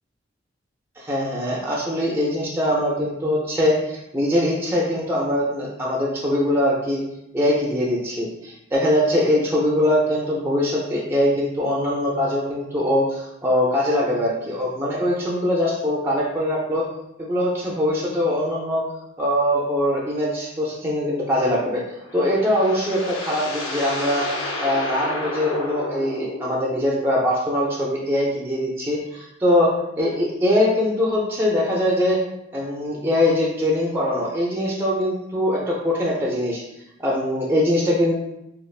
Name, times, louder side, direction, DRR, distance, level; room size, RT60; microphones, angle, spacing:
voice 1, 1.0-7.0 7.3-16.8 17.2-18.8 19.2-21.8 22.1-24.3 24.6-29.7 30.0-32.2 32.5-36.6 37.0-38.2, left 1 dB, 10° right, -4 dB, 0.4 m, -22 dB
sound 1, 21.9-27.0, left 2 dB, 80° left, 0.6 m, -31 dB
3.2 x 2.4 x 2.3 m, 0.85 s
head